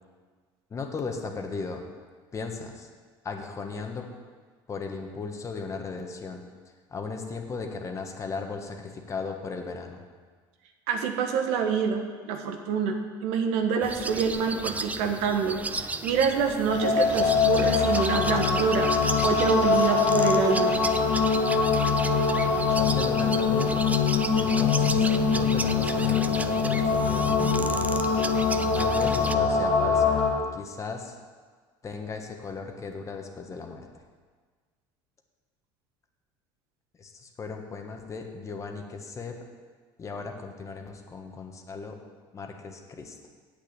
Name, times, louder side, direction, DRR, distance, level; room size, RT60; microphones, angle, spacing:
voice 1, 0.7-1.8 2.3-2.9 3.2-4.1 4.7-6.4 6.9-10.0 22.8-23.9 24.4-28.0 28.7-30.2 30.5-31.2 31.8-33.9 37.0-39.3 40.0-42.0 42.3-43.2, left 4 dB, 30° left, 4 dB, 1.4 m, -36 dB
voice 2, 10.9-20.8, right 6 dB, 75° right, 5 dB, 1.3 m, -26 dB
sound 1, 13.8-29.3, right 3 dB, 15° right, 0.5 m, -35 dB
sound 2, 16.7-30.3, left 5 dB, 65° left, 2.4 m, -23 dB
8.2 x 6.8 x 8.3 m, 1.5 s
supercardioid pair, 105°, 11 cm